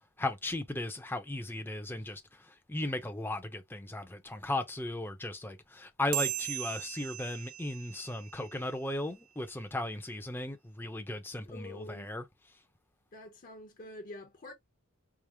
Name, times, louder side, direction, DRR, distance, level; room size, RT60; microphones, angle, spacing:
voice 1, 0.2-2.2 2.5-12.2, left 1 dB, 10° left, 0.6 m, -36 dB
sound 1, 6.1-9.0, right 15 dB, 75° right, 0.4 m, -38 dB
voice 2, 11.5-12.1 13.1-14.5, left 1 dB, 40° left, 0.8 m, -47 dB
4.9 x 2.0 x 2.9 m
head